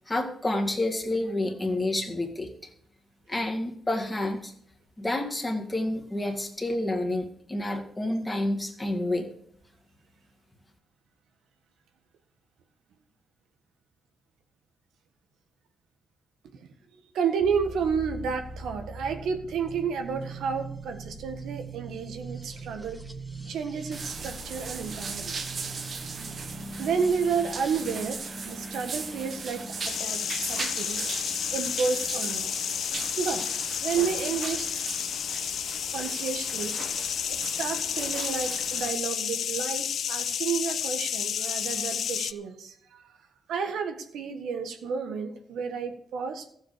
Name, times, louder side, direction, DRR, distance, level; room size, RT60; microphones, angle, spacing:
voice 1, 0.1-2.5 3.3-4.5 5.0-9.3, left 1 dB, 10° left, 1 dB, 2.0 m, -29 dB
voice 2, 16.5-23.0 23.5-25.4 26.8-31.0 31.5-32.6 33.2-33.5 33.8-34.7 35.9-36.8 37.3-43.0 43.5-46.5, right 6 dB, 85° right, 6 dB, 1.6 m, -31 dB
sound 1, 17.4-33.1 34.3-34.9, right 2 dB, 10° right, 1.3 m, -42 dB
sound 2, 23.9-38.9, right 4 dB, 40° right, 1.2 m, -38 dB
sound 3, 29.8-42.3, left 9 dB, 60° left, 0.5 m, -31 dB
15.0 x 7.7 x 6.7 m, 0.69 s
wide cardioid pair, 165°, 0 cm